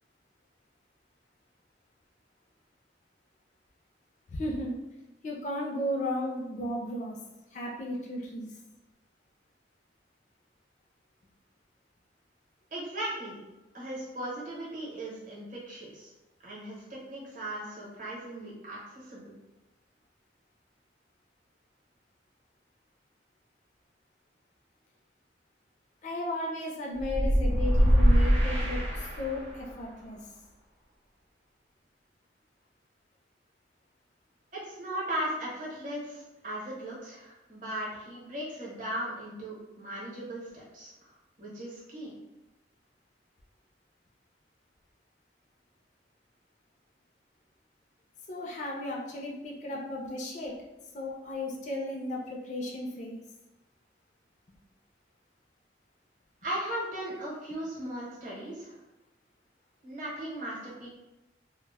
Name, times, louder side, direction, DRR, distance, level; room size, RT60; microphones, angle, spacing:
voice 1, 4.3-4.8 5.2-7.2 7.5-8.6 26.0-30.2 48.3-50.5 50.9-53.2, left 1 dB, 40° left, -2 dB, 0.4 m, -35 dB
voice 2, 12.7-13.4 13.7-16.1 16.4-19.3 34.5-40.9 41.4-42.1 56.4-58.8 59.8-60.9, right 1 dB, 45° right, -6 dB, 0.8 m, -37 dB
sound 1, 27.0-29.6, equal, 85° right, 0.7 m, -23 dB
2.1 x 2.0 x 3.4 m, 1.0 s
head